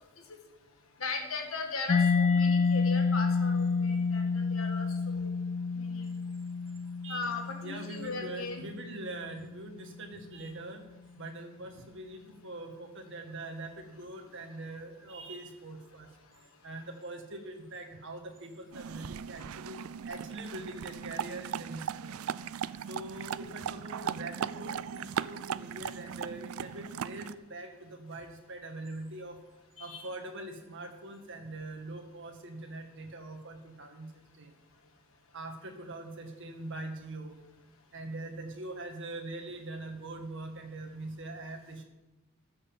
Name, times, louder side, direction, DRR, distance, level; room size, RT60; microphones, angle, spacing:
voice 1, 1.0-5.3 5.8-6.1 7.1-8.6 29.8-30.1, left 4 dB, 75° left, 3 dB, 1.5 m, -38 dB
Mallet percussion, 1.9-9.4, left 4 dB, 35° left, 0.3 m, -29 dB
voice 2, 7.6-10.8 11.2-16.1 16.6-19.8 20.1-22.1 22.9-29.4 29.8-34.5 35.3-37.4 37.9-41.8, right 2 dB, 60° right, 4 dB, 2.0 m, -43 dB
sound 1, 18.7-27.3, right 8 dB, 85° right, 0.4 m, -38 dB
13.0 x 6.8 x 7.4 m, 1.0 s
head